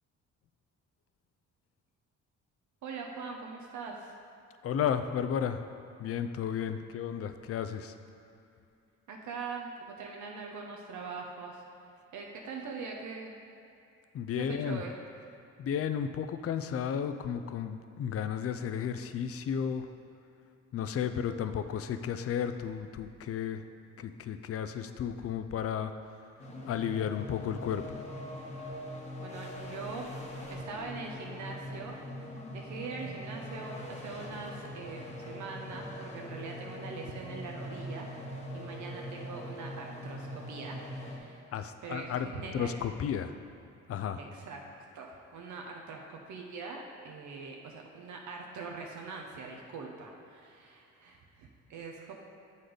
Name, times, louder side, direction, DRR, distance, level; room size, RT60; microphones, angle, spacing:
voice 1, 2.8-4.1 9.1-11.6 12.1-13.3 14.4-14.9 29.2-30.1 30.5-32.0 32.5-41.4 41.8-42.7 44.2-44.6 44.9-52.1, right 4 dB, 70° right, 0 dB, 0.8 m, -42 dB
voice 2, 4.6-5.6 6.0-7.9 14.1-14.8 15.6-19.9 20.7-23.6 24.0-25.9 26.6-28.0 41.5-42.3 42.5-43.3 43.9-44.2, left 8 dB, 50° left, 10 dB, 0.5 m, -33 dB
sound 1, 26.4-41.2, equal, 20° left, 1.0 m, -42 dB
7.7 x 4.1 x 5.0 m, 2.7 s
cardioid pair, 90°, 30 cm